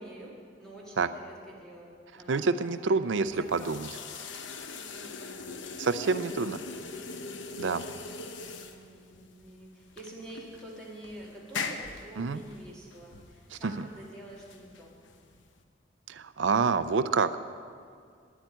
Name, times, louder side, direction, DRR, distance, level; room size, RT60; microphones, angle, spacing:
voice 1, 0.0-3.0 3.4-4.0 4.7-6.9 7.9-14.9, right 1 dB, 5° left, -5 dB, 2.3 m, -47 dB
voice 2, 2.3-3.9 5.8-6.6 7.6-7.8 12.2-12.4 13.6-13.7 16.1-17.4, right 4 dB, 80° right, 11 dB, 0.5 m, -27 dB
sound 1, 3.2-15.6, left 4 dB, 90° left, 0.9 m, -42 dB
10.0 x 8.9 x 9.5 m, 2.2 s
head